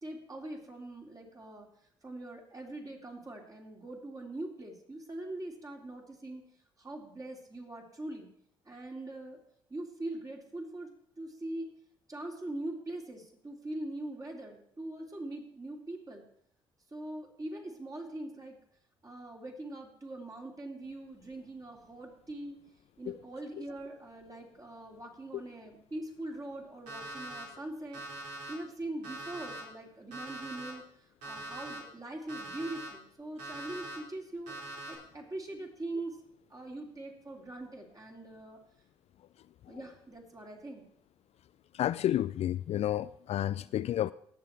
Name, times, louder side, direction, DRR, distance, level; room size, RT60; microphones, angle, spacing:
voice 1, 0.0-1.7 2.0-6.5 6.8-8.3 8.7-9.4 9.7-10.9 11.2-11.7 12.1-16.3 16.9-18.6 19.0-22.6 23.0-34.6 34.9-36.2 36.5-38.6 39.7-40.9, right 1 dB, 25° right, 3.6 m, -42 dB
Alarm, 26.9-27.4 27.9-28.5 29.0-29.6 30.1-30.7 31.2-31.8 32.3-32.9 33.4-34.0 34.5-35.0, right 2 dB, 75° right, 4.7 m, -42 dB
voice 2, 41.7-44.1, left 12 dB, 55° left, 0.4 m, -31 dB
18.5 x 7.2 x 4.7 m
hypercardioid pair, 50°, 13 cm